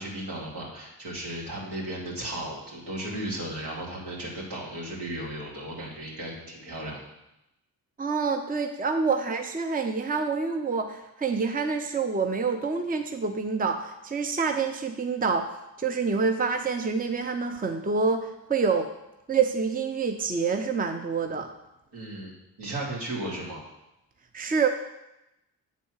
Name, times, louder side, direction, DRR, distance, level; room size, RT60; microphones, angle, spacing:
voice 1, 0.0-7.0 21.9-22.3 22.6-23.6, right 1 dB, 70° right, -4 dB, 2.9 m, -35 dB
voice 2, 8.0-15.5 15.8-18.9 19.3-21.5 24.3-24.7, right 5 dB, 20° right, 5 dB, 0.7 m, -27 dB
8.2 x 4.2 x 6.4 m, 0.91 s
supercardioid pair, 50°, 43 cm